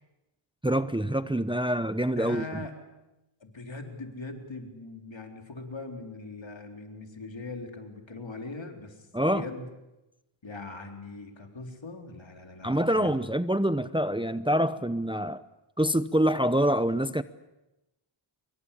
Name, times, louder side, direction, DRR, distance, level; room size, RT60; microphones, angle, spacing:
voice 1, 0.6-2.4 9.1-9.4 12.6-15.4 15.8-17.2, equal, 10° right, 12 dB, 0.8 m, -26 dB
voice 2, 2.1-2.7 3.4-9.7 10.4-13.2, left 3 dB, 65° left, 3 dB, 4.1 m, -41 dB
25.5 x 23.0 x 8.5 m, 0.96 s
wide cardioid pair, 60°, 49 cm